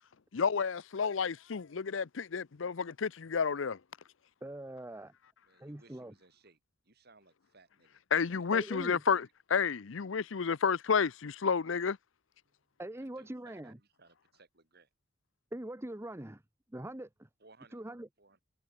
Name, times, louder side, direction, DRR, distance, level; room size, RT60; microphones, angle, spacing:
voice 1, 0.3-3.8 8.1-12.0, left 6 dB, 70° left, 0.6 m, -31 dB
voice 2, 4.4-5.1 5.6-6.1 8.5-9.0 12.8-13.8 15.5-16.4 16.7-17.3 17.7-18.1, right 1 dB, 15° right, 0.8 m, -43 dB
voice 3, 5.5-6.6 6.8-8.0 8.3-8.5 12.5-12.6 13.2-14.9 17.4-17.8 18.2-18.4, right 3 dB, 55° right, 6.1 m, -62 dB
head